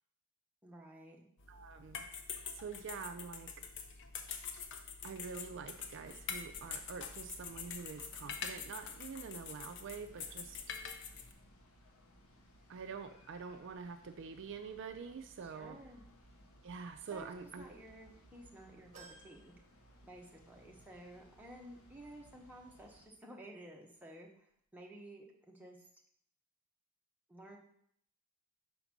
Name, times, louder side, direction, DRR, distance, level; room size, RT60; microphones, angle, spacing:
voice 1, 0.6-1.2 15.4-16.0 17.1-19.5 20.0-26.0 27.3-27.6, right 1 dB, 10° right, -1 dB, 0.8 m, -53 dB
sound 1, 1.4-11.3, left 6 dB, 55° left, 0.6 m, -45 dB
voice 2, 1.5-2.1 2.5-3.5 5.0-10.6 12.7-15.8 16.6-17.6, right 5 dB, 55° right, 7 dB, 0.4 m, -46 dB
sound 2, 5.2-23.1, equal, 80° left, 1.0 m, -63 dB
sound 3, 18.9-20.6 21.0-21.1 22.3-22.4, right 3 dB, 35° right, 1.0 m, -59 dB
5.1 x 3.9 x 5.9 m, 0.68 s
head